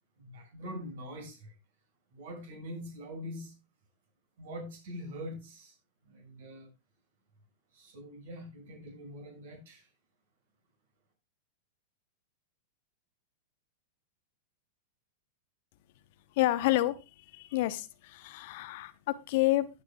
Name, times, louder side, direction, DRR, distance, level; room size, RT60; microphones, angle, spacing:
voice 1, 0.2-1.5 2.1-3.6 4.4-5.7 6.0-6.7 7.7-9.9, equal, 60° right, 2 dB, 6.4 m, -43 dB
voice 2, 16.4-19.7, left 17 dB, 55° left, 13 dB, 0.9 m, -29 dB
15.5 x 8.7 x 2.4 m, 0.27 s
figure-of-eight pair, 100°, 0 cm